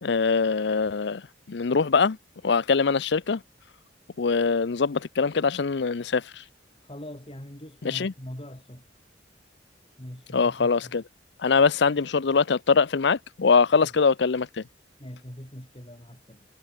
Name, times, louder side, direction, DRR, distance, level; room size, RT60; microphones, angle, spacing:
voice 1, 0.0-1.2 1.5-2.2 2.4-3.4 4.2-6.4 7.8-8.1 10.3-11.0 11.4-14.6, left 5 dB, 70° left, 0.6 m, -23 dB
voice 2, 6.8-8.8 10.0-11.0 15.0-16.5, equal, 30° left, 3.4 m, -42 dB
head